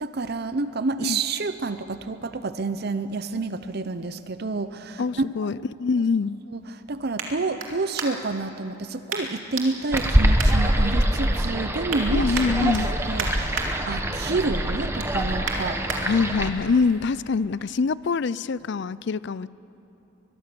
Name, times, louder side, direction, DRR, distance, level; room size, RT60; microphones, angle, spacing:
voice 1, 0.0-5.5 6.5-6.6 6.9-12.8 13.1-16.1, right 3 dB, 50° right, 12 dB, 0.7 m, -29 dB
voice 2, 5.0-6.4 12.1-12.9 16.0-19.5, left 4 dB, 60° left, 19 dB, 0.4 m, -24 dB
sound 1, 5.8-8.4 9.1-9.7 9.9-11.2 11.6-12.0 12.3-13.7 14.1-14.4 14.7-16.0 16.5-16.6, right 5 dB, 80° right, 2.9 m, -34 dB
sound 2, 9.9-16.5, equal, 15° right, 1.3 m, -24 dB
23.5 x 22.0 x 6.9 m, 3.0 s
head